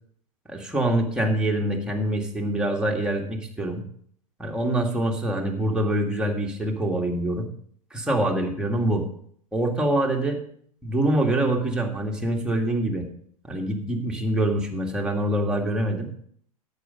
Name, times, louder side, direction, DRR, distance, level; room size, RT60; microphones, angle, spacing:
voice 1, 0.5-3.8 4.4-7.5 7.9-9.0 9.5-10.4 10.8-13.0 13.4-16.1, right 1 dB, 5° right, 0 dB, 2.2 m, -25 dB
11.0 x 8.4 x 5.3 m, 0.62 s
hypercardioid pair, 95°, 19 cm